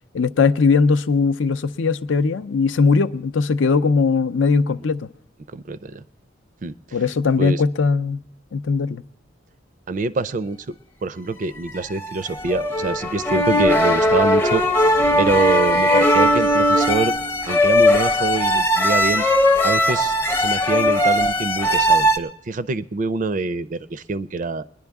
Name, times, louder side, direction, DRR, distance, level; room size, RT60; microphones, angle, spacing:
voice 1, 0.1-5.1 6.9-8.2 8.5-9.0, left 4 dB, 75° left, 0.5 m, -19 dB
voice 2, 5.5-6.0 6.6-6.7 7.4-7.6 9.9-10.8 11.0-14.6 15.2-17.2 17.5-19.2 19.6-24.6, right 3 dB, 40° right, 0.4 m, -25 dB
sound 1, 11.7-22.2, left 1 dB, 10° left, 0.6 m, -18 dB
21.5 x 10.5 x 3.5 m
head